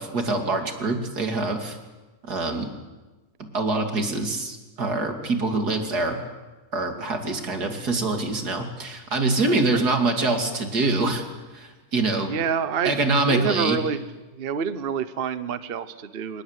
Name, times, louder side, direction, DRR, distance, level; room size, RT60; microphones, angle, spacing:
voice 1, 0.0-1.8 2.2-2.7 3.5-6.2 6.7-11.3 11.5-12.3 12.8-13.8, right 2 dB, 80° right, 5 dB, 3.3 m, -25 dB
voice 2, 9.5-9.9 12.3-14.0 14.3-16.4, right 6 dB, 45° right, 13 dB, 1.0 m, -28 dB
27.5 x 19.0 x 8.3 m, 1.2 s
omnidirectional pair, 1.7 m